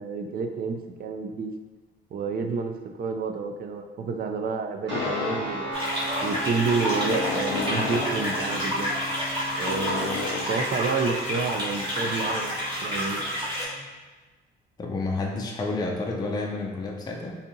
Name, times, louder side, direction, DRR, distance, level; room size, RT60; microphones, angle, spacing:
voice 1, 0.0-1.5 2.1-5.8 6.2-9.0 9.6-12.5 12.8-13.2, right 4 dB, 50° right, 5 dB, 0.4 m, -29 dB
sound 1, 4.9-10.4, left 5 dB, 85° left, 0.4 m, -34 dB
sound 2, 4.9-13.8, equal, 65° right, 1.2 m, -37 dB
sound 3, 5.7-13.6, equal, 25° right, 1.5 m, -29 dB
voice 2, 14.8-17.4, left 3 dB, 20° left, 0 dB, 0.4 m, -30 dB
4.1 x 2.6 x 2.6 m, 1.3 s
cardioid pair, 90°, 20 cm